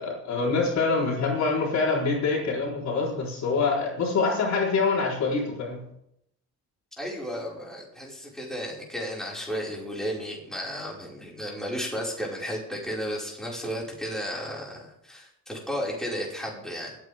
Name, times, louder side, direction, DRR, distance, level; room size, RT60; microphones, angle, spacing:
voice 1, 0.0-5.8, left 4 dB, 65° left, -2 dB, 4.2 m, -25 dB
voice 2, 7.0-17.0, equal, ahead, -4 dB, 5.5 m, -33 dB
24.5 x 9.1 x 3.7 m, 0.76 s
cardioid pair, 90°, 30 cm